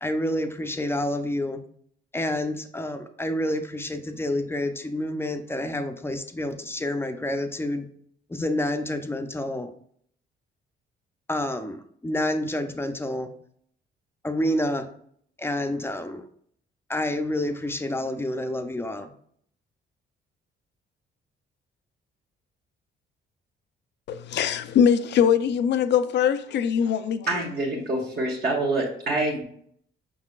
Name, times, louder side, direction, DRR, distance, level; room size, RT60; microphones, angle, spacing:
voice 1, 0.0-1.6 2.1-7.9 8.3-9.7 11.3-13.3 14.2-14.9 15.4-16.2 16.9-19.1, left 1 dB, 10° left, 0.5 m, -28 dB
voice 2, 24.1-27.5, left 8 dB, 60° left, 0.4 m, -22 dB
voice 3, 27.3-29.4, right 2 dB, 50° right, 1.2 m, -26 dB
5.4 x 3.9 x 2.4 m
cardioid pair, 90°, 20 cm